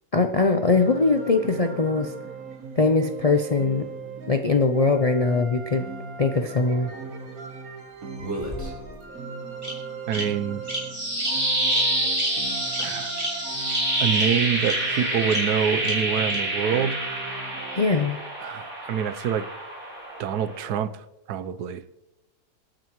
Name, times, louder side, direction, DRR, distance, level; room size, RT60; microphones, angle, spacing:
voice 1, 0.1-2.1 2.8-3.8 4.3-5.8 6.2-6.9 17.8-18.2, left 3 dB, 70° left, 6 dB, 0.3 m, -21 dB
sound 1, 0.6-17.9, right 4 dB, 60° right, 1.8 m, -38 dB
Bird vocalization bird call bird song, 8.2-9.0 9.6-9.7 10.1-10.2 10.7-10.8 11.2-11.3 11.7-11.8 12.2-12.3 12.7-12.9 13.2-13.3 13.7-13.8 14.1-14.2 14.6-14.7 15.3-15.4 15.8-15.9 16.3-16.4, equal, 10° right, 3.6 m, -30 dB
voice 2, 10.1-10.6 12.8-13.1 14.0-17.0 18.4-19.5 20.2-21.8, right 8 dB, 80° right, 14 dB, 1.2 m, -26 dB
sound 2, 10.7-20.7, right 1 dB, 30° right, 4.3 m, -27 dB
26.0 x 9.0 x 3.1 m, 0.96 s
omnidirectional pair, 1.7 m